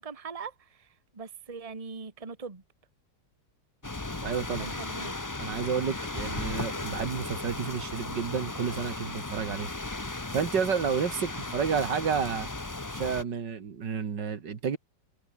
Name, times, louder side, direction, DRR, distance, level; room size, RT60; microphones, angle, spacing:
voice 1, 0.0-2.6 4.6-5.2 11.7-11.9, right 5 dB, 20° right, 1.6 m, -41 dB
sound 1, 3.8-13.2, left 2 dB, 15° left, 0.7 m, -36 dB
voice 2, 4.2-4.7 5.4-9.7 10.3-12.5 12.9-14.8, right 6 dB, 75° right, 2.5 m, -30 dB
omnidirectional pair, 1.9 m